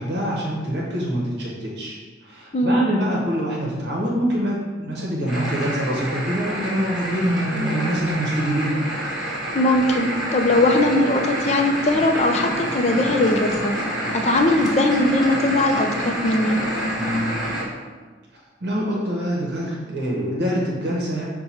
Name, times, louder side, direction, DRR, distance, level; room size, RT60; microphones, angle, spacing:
voice 1, 0.0-2.0 2.2-8.8 17.0-17.4 18.6-21.2, equal, 60° right, -4 dB, 0.9 m, -25 dB
voice 2, 2.5-2.8 9.5-13.7 14.1-16.6, left 1 dB, 35° left, 4 dB, 0.4 m, -20 dB
sound 1, 5.3-17.6, right 1 dB, ahead, 1.2 m, -28 dB
5.6 x 2.2 x 4.2 m, 1.4 s
head